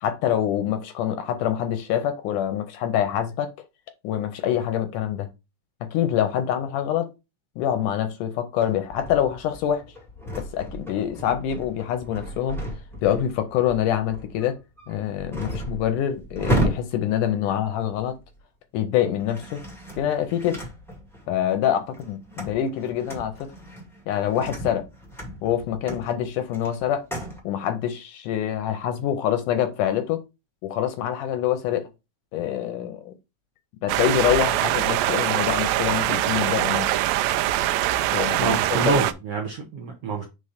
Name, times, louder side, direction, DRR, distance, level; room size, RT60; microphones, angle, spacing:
voice 1, 0.0-3.5 4.0-5.3 5.8-7.1 7.6-9.8 10.4-12.6 13.0-14.6 14.9-18.1 18.7-19.6 20.0-20.6 21.3-23.5 24.1-24.9 25.4-27.0 27.4-30.2 30.6-31.9 32.3-33.1 33.8-36.9 38.1-39.1, left 10 dB, 75° left, 2.0 m, -25 dB
sound 1, 8.6-18.4 19.1-21.3 21.8-27.4, right 1 dB, ahead, 0.7 m, -34 dB
sound 2, 33.9-39.1, right 14 dB, 85° right, 2.3 m, -23 dB
voice 2, 38.4-40.2, right 4 dB, 65° right, 1.5 m, -26 dB
5.5 x 4.2 x 5.0 m
omnidirectional pair, 4.1 m